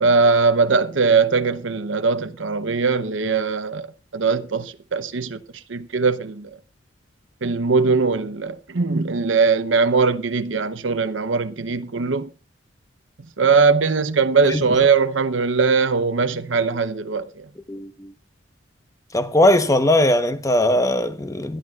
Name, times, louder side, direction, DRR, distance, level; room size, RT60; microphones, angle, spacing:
voice 1, 0.0-3.9 4.1-5.4 5.7-6.6 7.4-12.3 13.4-17.5, right 4 dB, 80° right, 0.8 m, -20 dB
voice 2, 17.7-18.1 19.1-21.6, left 1 dB, 15° left, 1.0 m, -19 dB
22.5 x 11.5 x 2.5 m
head